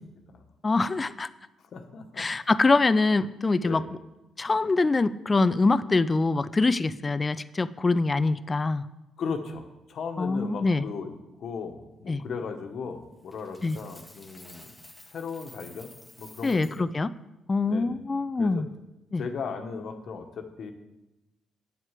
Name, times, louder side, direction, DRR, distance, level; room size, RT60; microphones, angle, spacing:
voice 1, 0.6-1.3 2.2-3.8 4.4-8.8 10.2-10.8 12.1-12.2 13.6-13.8 16.4-17.1 17.5-18.7 19.1-19.2, left 3 dB, 25° left, 15 dB, 0.5 m, -24 dB
voice 2, 1.7-2.3 3.6-3.9 9.2-11.1 11.4-14.8 15.1-16.9 17.6-17.9 18.4-18.6 19.2-20.7, left 5 dB, 60° left, 6 dB, 1.3 m, -37 dB
Coin (dropping), 13.3-16.8, left 1 dB, 5° left, 1.5 m, -51 dB
9.3 x 8.0 x 7.4 m, 1.0 s
cardioid pair, 90°, 0 cm